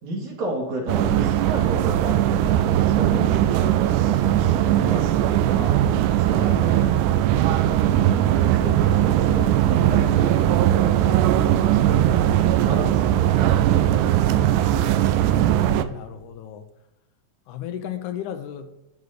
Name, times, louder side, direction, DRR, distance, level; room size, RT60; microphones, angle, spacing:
voice 1, 0.0-6.9 7.4-14.1, right 1 dB, 70° right, 3.6 m, -33 dB
sound 1, 0.9-15.8, right 12 dB, 85° right, 2.0 m, -19 dB
voice 2, 15.9-16.7 17.5-18.7, left 10 dB, 80° left, 2.2 m, -34 dB
12.0 x 4.1 x 6.5 m
omnidirectional pair, 3.5 m